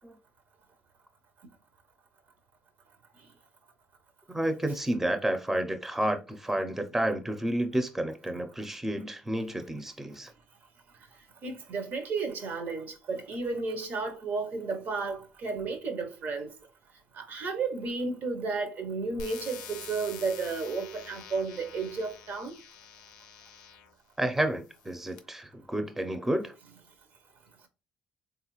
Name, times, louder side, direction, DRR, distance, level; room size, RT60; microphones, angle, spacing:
voice 1, 4.3-10.3 24.2-26.5, right 1 dB, 10° right, 0.5 m, -30 dB
voice 2, 11.4-16.5 17.2-22.6, right 4 dB, 60° right, 0.7 m, -33 dB
sound 1, 19.2-23.9 24.6-25.2, left 7 dB, 90° left, 0.4 m, -46 dB
3.5 x 2.4 x 3.0 m
supercardioid pair, 70°, 4 cm